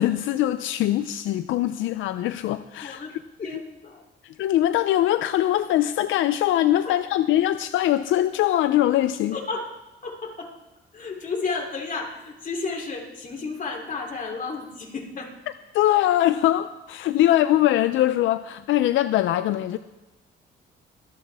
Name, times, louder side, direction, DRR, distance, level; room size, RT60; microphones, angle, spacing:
voice 1, 0.0-3.0 4.2-9.4 15.7-19.8, left 13 dB, 80° left, 12 dB, 0.5 m, -22 dB
voice 2, 2.8-3.1 3.4-4.0 6.8-7.0 9.3-9.7 10.0-10.5 10.9-15.3, left 4 dB, 40° left, 0 dB, 3.1 m, -32 dB
25.0 x 8.7 x 3.5 m, 1.0 s
cardioid pair, 90°, 20 cm